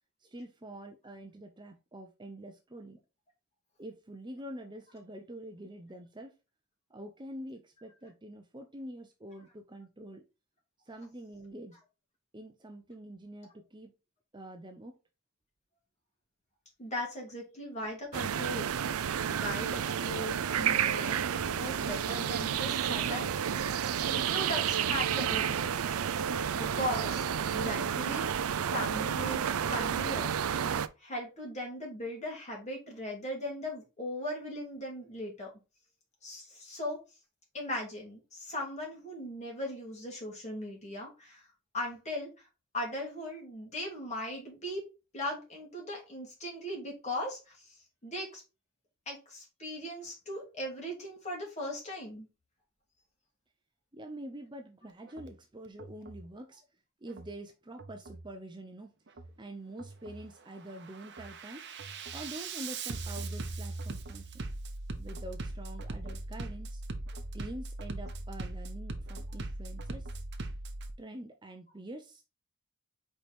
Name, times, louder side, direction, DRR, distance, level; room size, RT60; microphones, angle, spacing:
voice 1, 0.2-3.0 3.8-6.3 6.9-10.2 10.9-11.8 12.3-13.9 14.3-15.0 53.9-56.6 57.0-58.9 59.4-61.6 62.1-64.5 65.0-66.8 67.3-70.1 71.0-72.2, right 1 dB, 20° right, 4 dB, 0.7 m, -46 dB
voice 2, 16.8-18.7 19.3-23.5 24.0-25.8 26.5-27.2 27.5-28.3 28.7-29.4 29.7-30.3 31.0-35.5 36.2-37.0 37.5-41.4 41.7-42.5 42.7-44.8 45.1-48.4 49.1-52.3, left 1 dB, 35° left, -1 dB, 2.7 m, -38 dB
sound 1, 18.1-30.9, right 8 dB, 85° right, 0.5 m, -31 dB
Bass drum, 55.1-55.3 55.8-56.3 57.1-57.3 57.8-58.3 59.1-59.3 59.8-60.3 60.7-70.9, right 2 dB, 55° right, 0.9 m, -40 dB
5.1 x 4.7 x 4.2 m, 0.29 s
head